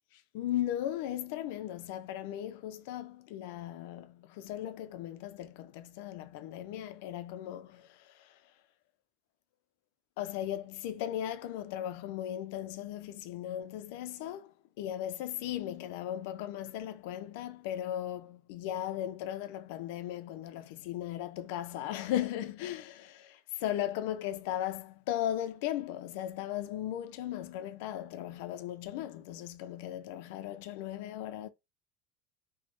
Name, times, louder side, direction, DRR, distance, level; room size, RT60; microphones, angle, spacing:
voice 1, 0.3-8.3 10.2-31.5, left 12 dB, 80° left, 0.4 m, -37 dB
3.1 x 2.0 x 3.0 m
cardioid pair, 155°, 0 cm